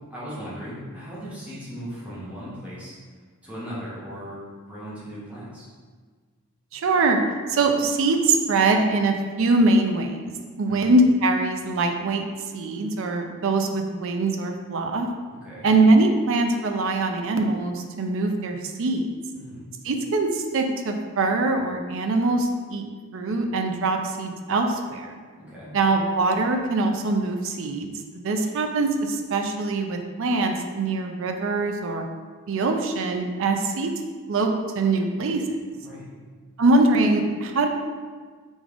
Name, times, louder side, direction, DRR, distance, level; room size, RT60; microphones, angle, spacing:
voice 1, 0.1-2.9 3.4-4.4 4.7-5.7 10.6-10.9 15.3-15.7 19.3-19.6 25.4-25.7 35.8-36.1, equal, 5° right, -10 dB, 1.2 m, -37 dB
voice 2, 6.7-7.2 7.5-10.3 10.6-12.2 12.5-15.1 15.6-19.1 19.8-22.9 23.1-25.1 25.7-32.0 32.5-33.9 34.3-35.6 36.6-37.7, right 2 dB, 65° right, 4 dB, 0.4 m, -23 dB
3.7 x 3.6 x 3.5 m, 1.5 s
head